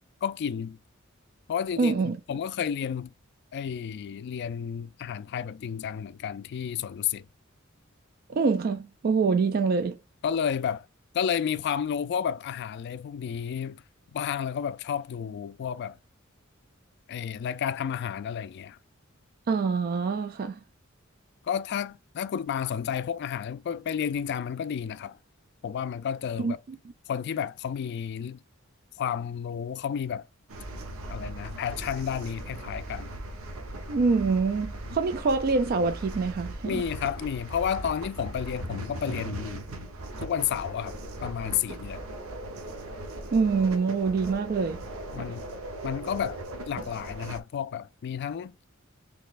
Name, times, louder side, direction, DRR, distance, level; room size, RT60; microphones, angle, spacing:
voice 1, 0.2-0.8 1.5-3.1 3.5-7.3 10.2-10.9 11.1-13.8 14.1-16.0 17.1-18.8 21.5-25.2 25.6-26.6 27.1-28.4 29.0-30.2 31.1-33.1 34.8-34.9 36.6-39.6 40.2-42.1 45.1-45.5 45.8-48.5, left 8 dB, 55° left, 0.3 m, -31 dB
voice 2, 1.8-2.2 8.3-10.0 19.5-20.6 26.4-26.5 33.9-36.8 43.3-44.8 45.2-45.3, right 4 dB, 45° right, 0.3 m, -25 dB
sound 1, 30.5-47.4, right 1 dB, 85° right, 0.8 m, -39 dB
4.0 x 3.1 x 2.4 m
head